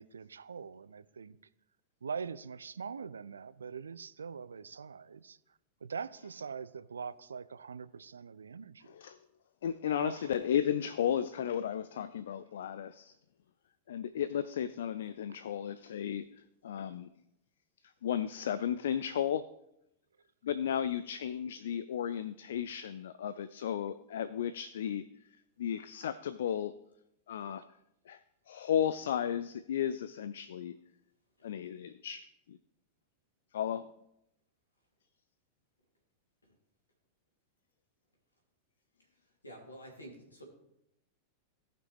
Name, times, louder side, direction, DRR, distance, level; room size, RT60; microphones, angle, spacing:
voice 1, 0.0-1.4 2.0-9.0 9.9-10.3, right 6 dB, 70° right, 0.4 m, -43 dB
voice 2, 8.9-9.2 9.6-13.2 13.9-17.1 18.0-19.5 20.4-25.1 25.6-26.8 27.3-27.7 28.1-28.2 28.5-30.8 31.4-32.6 33.5-33.9, left 9 dB, 60° left, 0.3 m, -34 dB
voice 3, 39.4-40.4, equal, 80° left, 2.8 m, -49 dB
17.0 x 5.9 x 3.4 m
figure-of-eight pair, 90°, 0 cm